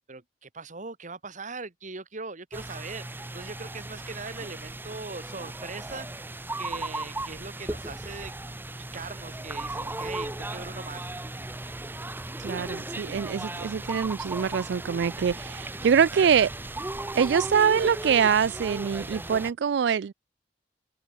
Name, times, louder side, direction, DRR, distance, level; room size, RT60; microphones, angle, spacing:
voice 1, 0.1-6.1 6.6-8.3 8.9-11.1, right 4 dB, 45° right, 1.8 m, -40 dB
Temple Ambience, 2.5-19.5, right 2 dB, 10° right, 0.8 m, -36 dB
voice 2, 12.4-16.5 17.1-20.1, right 7 dB, 70° right, 0.4 m, -24 dB
head